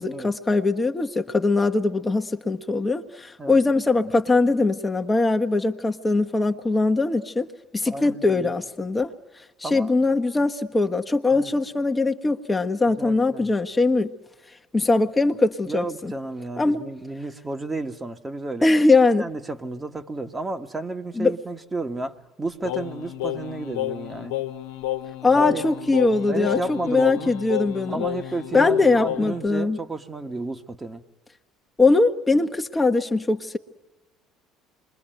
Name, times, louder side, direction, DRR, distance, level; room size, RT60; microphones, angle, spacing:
voice 1, 0.0-7.5 7.7-9.1 9.6-14.1 14.7-16.1 16.6-16.8 18.6-19.2 21.2-21.3 25.2-28.0 28.5-29.8 31.8-33.6, left 3 dB, 20° left, 5 dB, 1.2 m, -21 dB
voice 2, 7.9-8.6 9.6-9.9 11.3-11.5 12.9-13.5 15.7-18.7 19.2-24.3 25.3-25.7 26.3-27.4 27.9-31.0, right 2 dB, 20° right, 6 dB, 1.6 m, -32 dB
Singing, 22.6-29.5, left 14 dB, 80° left, 1.2 m, -31 dB
27.5 x 22.5 x 9.1 m, 1.1 s
hypercardioid pair, 65°, 0 cm